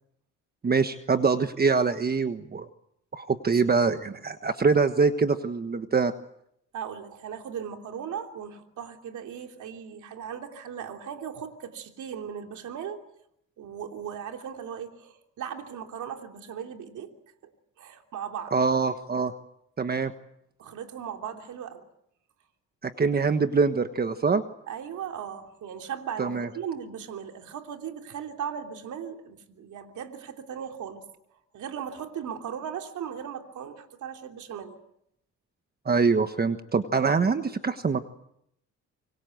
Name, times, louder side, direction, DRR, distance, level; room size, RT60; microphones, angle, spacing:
voice 1, 0.6-2.7 3.1-6.1 18.5-19.3 19.8-20.1 22.8-24.4 26.2-26.5 35.8-38.0, right 4 dB, 30° right, 9 dB, 1.4 m, -24 dB
voice 2, 3.7-4.1 6.7-13.0 13.6-17.1 17.8-18.5 20.6-21.8 24.7-31.0 31.3-34.8, right 8 dB, 75° right, 4 dB, 3.2 m, -37 dB
26.5 x 23.5 x 7.9 m, 0.77 s
cardioid pair, 90°, 30 cm